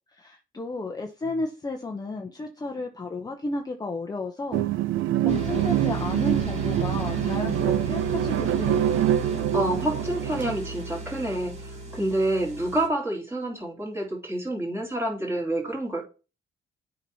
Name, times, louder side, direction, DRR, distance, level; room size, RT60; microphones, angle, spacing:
voice 1, 0.2-4.6 5.2-8.8, left 3 dB, 20° left, 0.7 m, -33 dB
sound 1, 4.5-10.6, right 12 dB, 80° right, 0.5 m, -25 dB
sound 2, 5.3-12.9, right 2 dB, 35° right, 2.7 m, -35 dB
voice 2, 9.5-11.5 11.9-16.0, right 1 dB, 10° right, 2.6 m, -28 dB
8.1 x 2.9 x 5.5 m
cardioid pair, 90°, 20 cm